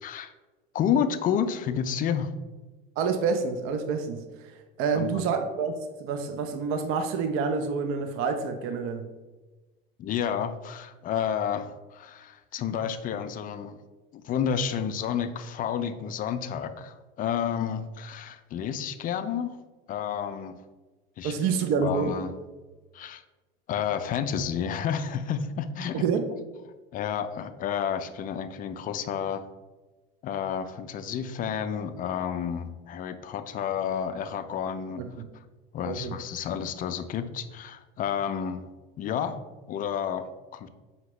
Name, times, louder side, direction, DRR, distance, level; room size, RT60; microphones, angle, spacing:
voice 1, 0.0-0.3 0.7-2.3 4.9-5.2 10.0-13.8 14.1-19.6 19.9-20.6 21.2-21.4 21.8-22.3 22.9-23.2 23.7-26.1 26.9-29.4 30.2-35.0 35.7-38.6 39.0-40.7, left 8 dB, 30° left, 10 dB, 0.4 m, -30 dB
voice 2, 3.0-4.5 4.8-9.1 21.2-22.1 25.9-26.3 35.0-35.3 35.8-36.2, right 5 dB, 50° right, 7 dB, 0.5 m, -28 dB
4.9 x 2.8 x 3.1 m, 1.2 s
hypercardioid pair, 80°, 29 cm